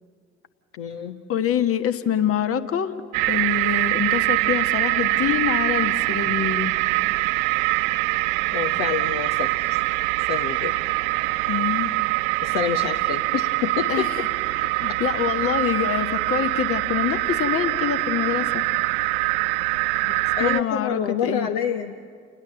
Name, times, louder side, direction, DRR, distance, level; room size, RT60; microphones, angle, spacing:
voice 1, 0.8-1.2 8.5-9.7 10.3-10.7 12.4-14.1 20.0-21.9, left 8 dB, 60° left, 6 dB, 1.1 m, -27 dB
voice 2, 1.3-2.9 3.3-6.7 11.5-11.9 13.9-14.3 14.5-18.6 20.4-21.5, left 9 dB, 45° left, 10 dB, 1.5 m, -25 dB
sound 1, 3.1-20.6, right 20 dB, 60° right, 0.6 m, -24 dB
29.5 x 20.5 x 7.7 m, 2.1 s
figure-of-eight pair, 50°, 33 cm